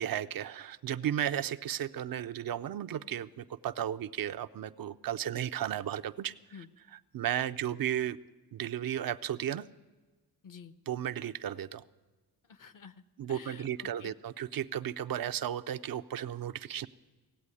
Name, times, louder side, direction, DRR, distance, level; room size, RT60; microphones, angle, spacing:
voice 1, 0.0-6.3 7.1-8.2 8.5-9.7 10.9-11.8 13.2-16.9, right 10 dB, 60° right, 11 dB, 0.6 m, -34 dB
voice 2, 10.4-10.7 12.4-14.1, left 6 dB, 50° left, 15 dB, 0.9 m, -50 dB
17.5 x 8.3 x 9.7 m, 1.3 s
cardioid pair, 95°, 40 cm